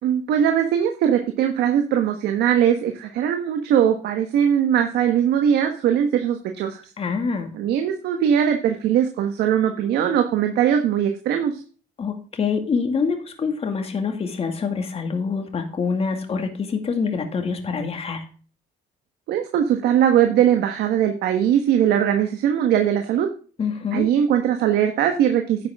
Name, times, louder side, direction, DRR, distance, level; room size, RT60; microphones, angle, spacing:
voice 1, 0.0-6.8 7.5-11.6 19.3-23.3 23.9-25.6, right 9 dB, 75° right, 5 dB, 1.4 m, -20 dB
voice 2, 7.0-7.5 12.0-18.2 23.6-24.1, left 5 dB, 35° left, 5 dB, 2.2 m, -25 dB
10.5 x 8.3 x 3.6 m, 0.40 s
cardioid pair, 110°, 17 cm